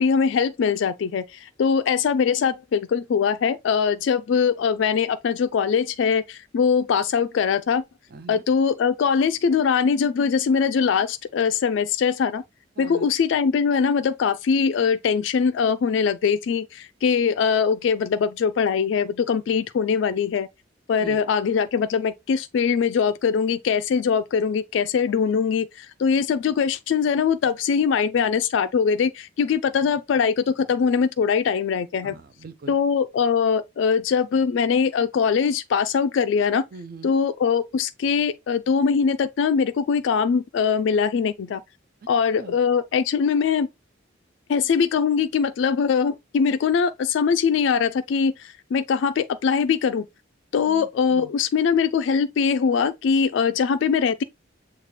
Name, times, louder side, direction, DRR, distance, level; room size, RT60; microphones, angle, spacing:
voice 1, 0.0-7.8 8.3-12.4 12.8-20.5 20.9-32.2 32.7-36.6 37.0-41.6 42.1-43.7 44.5-50.1 50.5-54.2, left 6 dB, 70° left, 0.3 m, -22 dB
voice 2, 8.1-8.4 12.8-13.1 21.0-21.2 32.0-32.7 36.7-37.2 42.3-42.5 50.7-51.3, right 3 dB, 45° right, 0.5 m, -41 dB
6.5 x 2.3 x 3.1 m
head